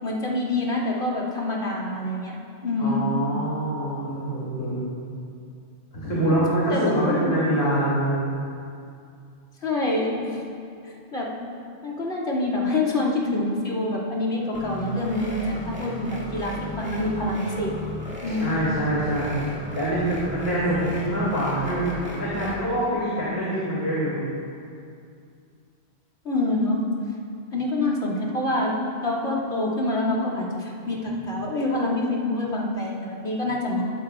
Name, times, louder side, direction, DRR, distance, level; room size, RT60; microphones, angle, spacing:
voice 1, 0.0-2.4 2.6-3.1 6.2-6.4 6.7-7.3 9.6-10.4 10.8-11.3 11.8-17.7 18.2-18.6 26.2-26.8 27.5-28.8 29.0-33.8, left 2 dB, 85° left, -4 dB, 3.0 m, -26 dB
voice 2, 2.8-4.8 5.9-8.3 18.4-19.3 19.7-24.2, right 1 dB, 65° left, -9 dB, 3.2 m, -25 dB
sound 1, 14.5-22.6, equal, 10° right, 2.1 m, -36 dB
21.0 x 14.0 x 2.5 m, 2.4 s
omnidirectional pair, 1.1 m